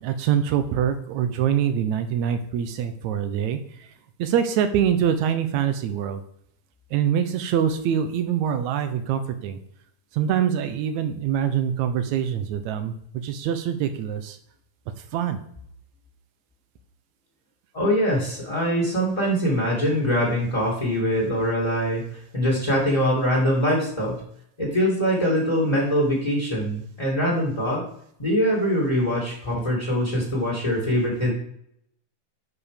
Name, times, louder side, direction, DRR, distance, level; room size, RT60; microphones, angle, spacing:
voice 1, 0.0-3.6 4.2-6.2 6.9-9.6 10.2-12.9 13.2-14.4 15.1-15.4, right 9 dB, 70° right, 9 dB, 1.9 m, -24 dB
voice 2, 17.7-24.2 24.6-27.8 28.2-31.3, equal, 10° left, -4 dB, 2.0 m, -23 dB
11.0 x 5.0 x 5.1 m, 0.70 s
omnidirectional pair, 3.9 m